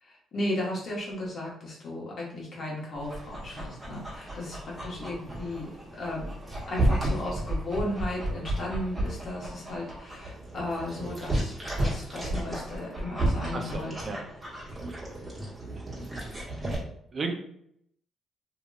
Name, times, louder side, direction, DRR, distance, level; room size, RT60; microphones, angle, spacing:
voice 1, 0.0-5.7 6.0-6.3 6.6-14.2, left 1 dB, 50° left, -4 dB, 1.2 m, -35 dB
Dog, 3.0-16.8, right 1 dB, 20° right, 1.3 m, -33 dB
voice 2, 13.5-14.2 14.9-15.0 16.2-16.3 17.1-17.3, right 4 dB, 40° right, 3 dB, 0.5 m, -34 dB
2.9 x 2.8 x 2.3 m, 0.70 s
cardioid pair, 90°, 0 cm